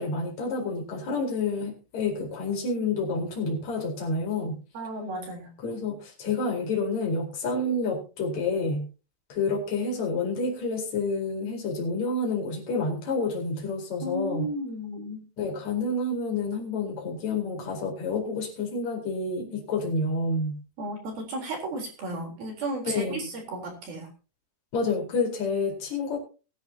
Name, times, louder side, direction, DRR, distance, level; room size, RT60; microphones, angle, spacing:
voice 1, 0.0-4.6 5.6-8.9 9.3-14.5 15.4-20.6 22.8-23.3 24.7-26.2, left 3 dB, 35° left, 1 dB, 5.2 m, -29 dB
voice 2, 4.7-5.5 14.0-15.2 20.8-24.1, right 1 dB, 50° right, 1 dB, 5.3 m, -34 dB
22.5 x 11.0 x 2.9 m, 0.34 s
omnidirectional pair, 6.0 m